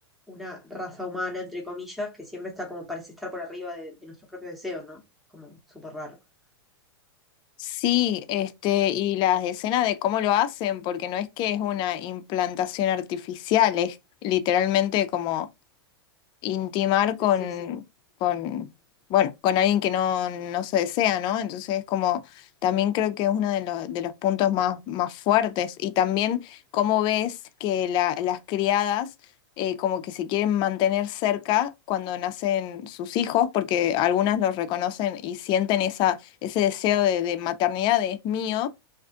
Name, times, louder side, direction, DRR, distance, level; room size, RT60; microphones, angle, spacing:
voice 1, 0.3-5.0 5.3-6.2 17.2-17.5, left 2 dB, ahead, 0.9 m, -36 dB
voice 2, 7.6-14.0 14.2-15.5 16.4-17.8 18.2-18.7 19.1-22.2 22.6-29.1 29.6-38.7, left 11 dB, 35° left, 0.4 m, -25 dB
2.5 x 2.3 x 3.6 m
hypercardioid pair, 125°, 13 cm